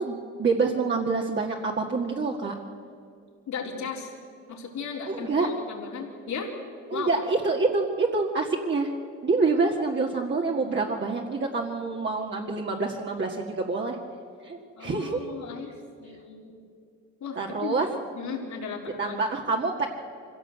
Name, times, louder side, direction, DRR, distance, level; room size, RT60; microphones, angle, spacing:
voice 1, 0.0-2.5 5.1-5.5 6.9-8.9 9.2-14.0 14.4-15.3 17.4-17.9 19.0-19.9, right 3 dB, 40° right, -1 dB, 2.0 m, -26 dB
voice 2, 3.5-4.1 4.5-6.5 6.9-7.1 14.8-15.7 16.0-16.5 17.2-17.8 18.1-19.2, left 5 dB, 70° left, 0 dB, 4.0 m, -36 dB
24.5 x 16.5 x 8.1 m, 2.4 s
cardioid pair, 90°, 30 cm